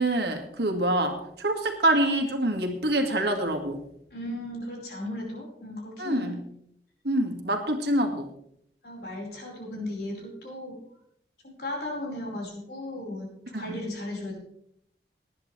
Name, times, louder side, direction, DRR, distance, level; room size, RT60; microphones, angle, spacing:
voice 1, 0.0-3.8 6.0-6.4 7.0-8.3 13.5-13.8, right 1 dB, 70° right, 5 dB, 1.9 m, -26 dB
voice 2, 4.1-6.4 8.8-10.8 11.4-14.4, left 1 dB, 60° left, -1 dB, 5.0 m, -36 dB
18.5 x 10.5 x 3.3 m, 0.72 s
head